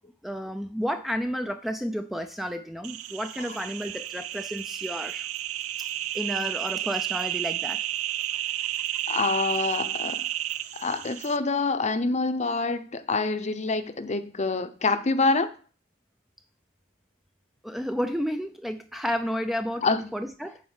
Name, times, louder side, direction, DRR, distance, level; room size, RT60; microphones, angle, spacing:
voice 1, 0.2-5.3 6.1-7.8 17.6-20.6, equal, ahead, 0.4 m, -31 dB
sound 1, 2.8-11.4, right 13 dB, 85° right, 0.5 m, -32 dB
voice 2, 9.1-10.3 10.8-15.5 19.8-20.1, left 3 dB, 35° left, 0.7 m, -26 dB
8.6 x 4.4 x 7.3 m
head